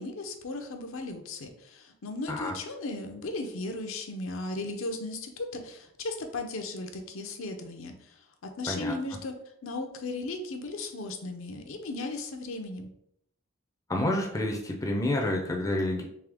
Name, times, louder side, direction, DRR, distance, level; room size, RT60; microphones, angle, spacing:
voice 1, 0.0-9.3 9.6-12.9, left 2 dB, 65° left, 5 dB, 0.6 m, -36 dB
voice 2, 13.9-16.0, left 1 dB, 15° left, 1 dB, 0.5 m, -29 dB
3.6 x 3.2 x 3.5 m, 0.73 s
head